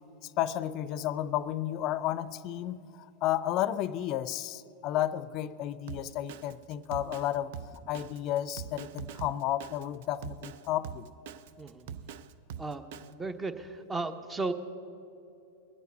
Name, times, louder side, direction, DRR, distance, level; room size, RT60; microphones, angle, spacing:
voice 1, 0.4-2.9 3.2-7.5 7.9-11.1, left 12 dB, 45° left, 17 dB, 0.5 m, -32 dB
Drum kit, 5.9-13.1, right 8 dB, 65° right, 0.5 m, -43 dB
voice 2, 11.6-11.9 12.6-12.8 13.1-14.5, right 3 dB, 15° right, 10 dB, 0.9 m, -35 dB
21.5 x 8.2 x 5.4 m, 2.8 s
hypercardioid pair, 105°, 0 cm